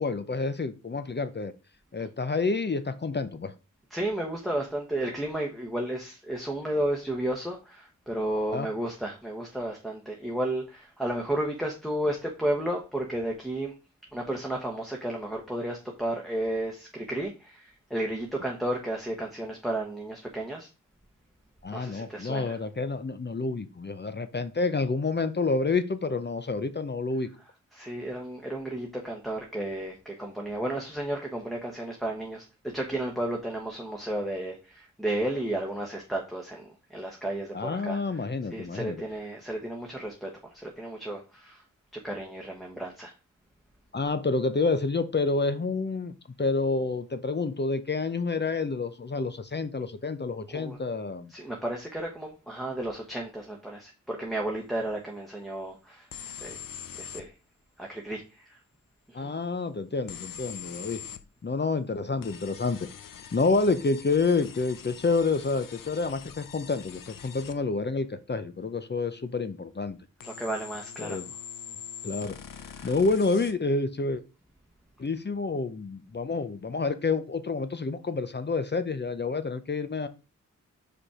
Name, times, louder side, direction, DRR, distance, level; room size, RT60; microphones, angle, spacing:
voice 1, 0.0-1.5 1.9-3.5 8.5-8.7 21.6-27.3 37.5-39.0 43.9-46.1 46.4-51.3 59.1-61.0 61.4-62.9 63.3-70.0 71.0-71.3 72.0-74.2 75.0-80.1, left 3 dB, 30° left, 11 dB, 0.7 m, -28 dB
voice 2, 3.9-13.7 14.1-20.7 21.7-22.6 27.7-32.4 32.7-38.2 38.5-41.6 41.9-43.1 50.5-50.8 51.3-56.1 56.4-56.6 56.9-57.3 57.8-58.6 59.1-59.3 70.2-71.2 72.8-72.9, right 1 dB, ahead, 1 dB, 1.3 m, -33 dB
sound 1, 56.1-57.3 60.1-61.2 62.2-67.6 70.2-73.5, left 8 dB, 80° left, 0.6 m, -43 dB
5.1 x 4.5 x 4.9 m, 0.32 s
cardioid pair, 55°, 33 cm